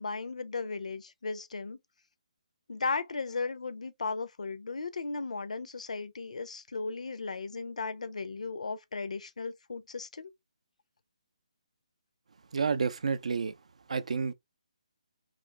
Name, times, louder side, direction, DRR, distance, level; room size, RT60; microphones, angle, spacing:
voice 1, 0.0-1.8 2.7-10.3, left 4 dB, 70° left, 0.5 m, -36 dB
voice 2, 12.5-13.5 13.9-14.3, right 5 dB, 65° right, 0.4 m, -29 dB
2.5 x 2.5 x 3.1 m
figure-of-eight pair, 150°, 4 cm